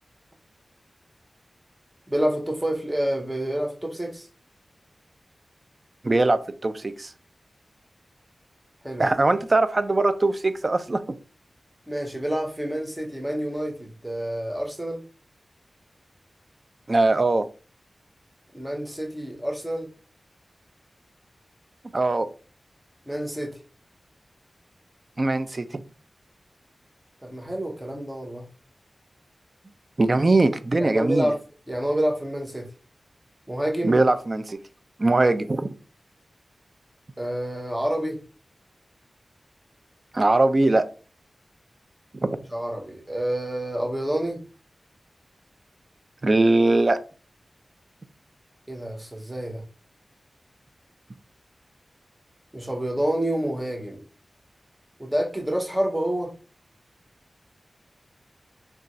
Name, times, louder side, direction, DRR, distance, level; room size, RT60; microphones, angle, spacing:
voice 1, 2.1-4.3 8.8-9.1 11.9-15.0 18.5-19.9 23.1-23.6 27.2-28.5 30.8-31.4 31.7-32.7 33.5-34.0 37.2-38.2 42.5-44.4 48.7-49.6 52.5-54.0 55.0-56.3, right 1 dB, 10° right, 0.7 m, -28 dB
voice 2, 6.0-7.1 9.0-11.0 16.9-17.5 21.9-22.3 25.2-25.8 30.0-31.3 33.8-34.6 35.0-35.7 40.1-40.9 42.2-42.3 46.2-47.0, right 2 dB, 40° right, 0.3 m, -21 dB
2.4 x 2.3 x 4.0 m
wide cardioid pair, 100°, 0 cm